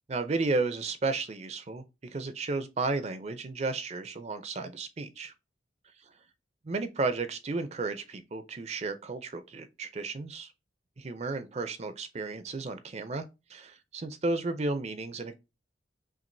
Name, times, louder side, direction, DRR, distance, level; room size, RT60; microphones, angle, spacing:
voice 1, 0.1-1.8 2.1-5.3 6.6-10.5 11.0-15.3, right 3 dB, 35° right, 0.5 m, -33 dB
5.8 x 2.5 x 2.6 m
head